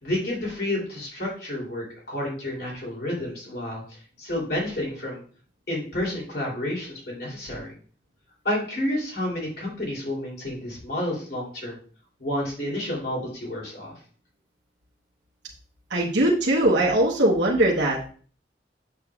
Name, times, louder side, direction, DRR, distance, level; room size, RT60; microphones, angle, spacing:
voice 1, 0.0-3.8 4.2-5.2 5.7-7.7 8.4-11.8 12.2-13.9, left 1 dB, 60° left, -4 dB, 3.0 m, -30 dB
voice 2, 15.9-18.1, right 1 dB, 90° right, -4 dB, 1.2 m, -21 dB
8.1 x 6.7 x 2.4 m, 0.42 s
head